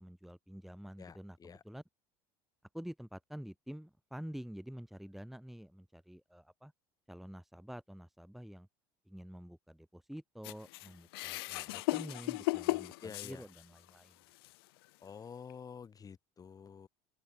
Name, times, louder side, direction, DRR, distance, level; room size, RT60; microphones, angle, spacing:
voice 1, 0.0-1.8 2.7-6.7 7.1-8.7 9.1-14.1, equal, ahead, 2.3 m, -48 dB
voice 2, 1.0-1.6 13.0-13.4 15.0-16.9, left 6 dB, 30° left, 2.5 m, -49 dB
sound 1, 10.4-13.9 14.4-14.5 15.5-15.6, left 22 dB, 80° left, 0.6 m, -36 dB
open air
supercardioid pair, 90°, 12 cm